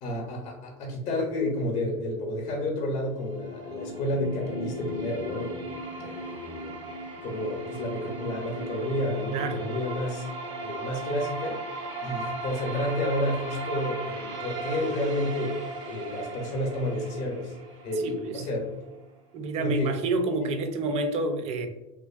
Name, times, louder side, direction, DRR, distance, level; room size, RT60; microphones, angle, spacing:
voice 1, 0.0-6.8 7.2-10.3 10.6-17.6 17.8-18.7 19.6-20.0 20.4-20.5, left 1 dB, 45° left, 0 dB, 0.6 m, -31 dB
sound 1, 3.0-19.0, right 2 dB, 70° right, 0.7 m, -37 dB
voice 2, 9.3-9.6 18.0-18.4 19.3-21.7, right 2 dB, 40° right, 7 dB, 0.4 m, -28 dB
2.6 x 2.4 x 2.3 m, 0.94 s
supercardioid pair, 130°, 16 cm